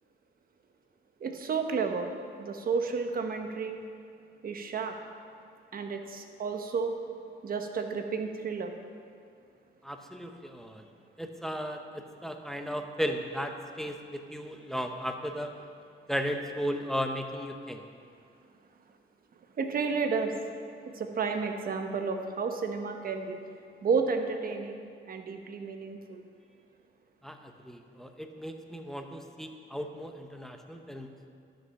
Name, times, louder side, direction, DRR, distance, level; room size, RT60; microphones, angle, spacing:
voice 1, 1.2-2.1 2.4-3.8 4.4-4.9 5.7-6.9 7.4-8.7 19.6-20.3 21.0-23.4 23.8-24.8 25.1-26.2, right 5 dB, 45° right, 5 dB, 1.1 m, -31 dB
voice 2, 9.8-10.9 11.2-15.5 16.1-17.8 27.2-31.1, equal, ahead, 5 dB, 0.8 m, -35 dB
12.5 x 6.3 x 5.7 m, 2.3 s
cardioid pair, 90°, 20 cm